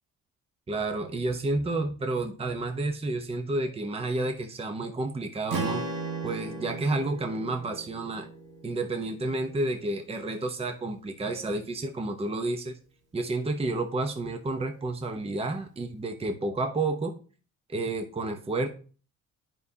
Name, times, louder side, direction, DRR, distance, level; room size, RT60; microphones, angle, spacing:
voice 1, 0.7-5.8 6.2-8.3 8.6-12.8 13.1-17.1 17.7-18.7, right 2 dB, 20° right, 6 dB, 0.8 m, -30 dB
Strum, 5.5-9.8, right 3 dB, 80° right, 1.5 m, -36 dB
9.5 x 5.4 x 2.8 m, 0.38 s
cardioid pair, 90°, 30 cm